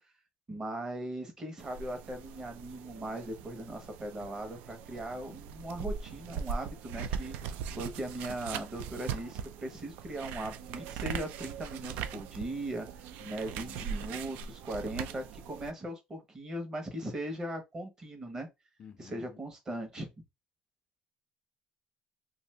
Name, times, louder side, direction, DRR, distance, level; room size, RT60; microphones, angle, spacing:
voice 1, 0.5-7.4 7.7-18.5 19.0-20.1, right 1 dB, 25° right, 1.0 m, -39 dB
sound 1, 1.6-15.7, right 7 dB, 85° right, 0.4 m, -40 dB
voice 2, 13.2-13.9 18.8-19.4, left 7 dB, 40° left, 0.4 m, -52 dB
2.6 x 2.6 x 3.3 m
cardioid pair, 140°, 3 cm